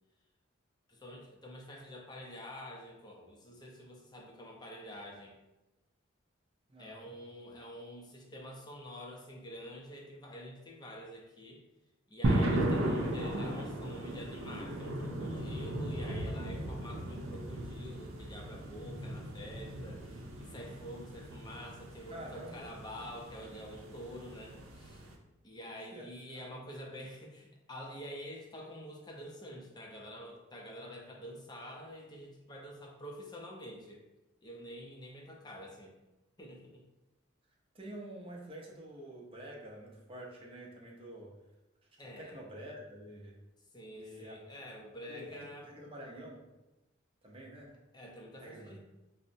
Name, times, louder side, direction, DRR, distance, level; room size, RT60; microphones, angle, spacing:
voice 1, 0.9-5.4 6.8-11.6 12.1-25.1 25.4-34.0 34.4-35.9 36.4-36.8 42.0-42.4 43.7-45.7 47.9-48.8, equal, 20° left, 0 dB, 0.5 m, -47 dB
voice 2, 6.7-7.1 22.1-22.6 25.9-26.6 37.7-41.3 42.2-43.4 43.9-44.4 45.1-46.5 47.2-47.8 48.4-48.7, right 1 dB, 25° right, -1 dB, 0.6 m, -48 dB
sound 1, 12.2-25.2, right 1 dB, 85° right, 0.6 m, -36 dB
5.3 x 2.0 x 2.6 m, 1.0 s
head